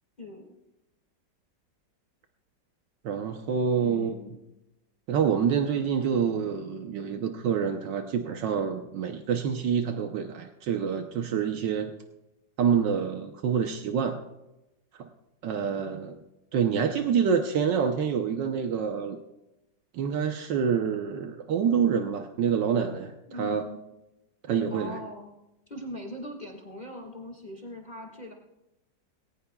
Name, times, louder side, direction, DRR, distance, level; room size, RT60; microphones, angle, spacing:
voice 1, 3.0-4.2 5.1-11.9 12.6-14.2 15.0-15.1 15.4-16.2 16.5-19.2 19.9-23.6 24.5-25.0, right 7 dB, 80° right, 5 dB, 1.5 m, -27 dB
voice 2, 3.8-4.4 23.3-23.8 24.7-25.4 25.7-28.3, equal, 25° left, 0 dB, 1.9 m, -41 dB
20.0 x 18.0 x 2.3 m, 0.94 s
omnidirectional pair, 1.9 m